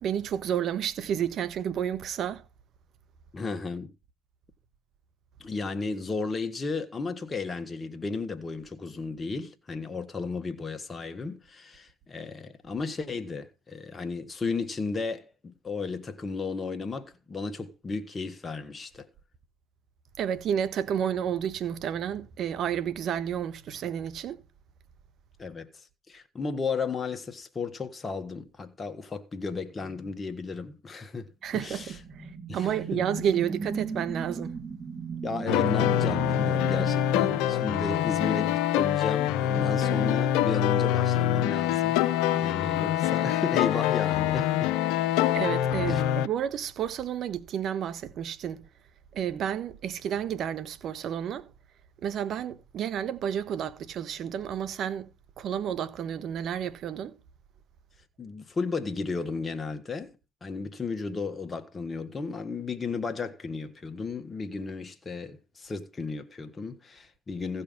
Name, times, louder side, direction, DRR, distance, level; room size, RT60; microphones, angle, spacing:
voice 1, 0.0-2.4 20.2-24.4 31.4-34.6 45.3-48.6 49.1-51.5 52.0-55.1 55.4-57.2, right 9 dB, 55° right, 1.3 m, -31 dB
voice 2, 3.3-3.9 5.4-19.1 25.4-32.0 32.5-33.0 35.2-42.0 42.3-44.8 45.9-46.0 58.2-60.1 60.4-67.6, left 4 dB, 25° left, 1.3 m, -34 dB
sound 1, 31.7-38.1, right 5 dB, 25° right, 2.6 m, -37 dB
sound 2, 35.5-46.3, left 11 dB, 70° left, 0.7 m, -25 dB
15.5 x 5.6 x 5.4 m
supercardioid pair, 80°, 0 cm